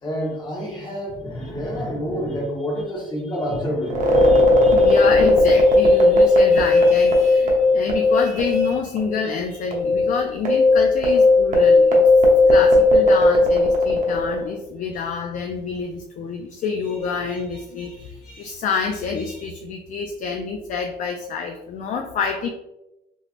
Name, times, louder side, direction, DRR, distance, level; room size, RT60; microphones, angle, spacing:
voice 1, 0.0-4.8, equal, 25° left, -4 dB, 1.2 m, -28 dB
sound 1, 3.9-8.7 9.0-9.1 9.7-14.5, left 2 dB, 50° right, 0.8 m, -16 dB
voice 2, 4.2-12.0 12.5-22.5, left 5 dB, 50° left, 4 dB, 0.4 m, -28 dB
3.1 x 3.0 x 2.5 m, 0.95 s
cardioid pair, 110°, 17 cm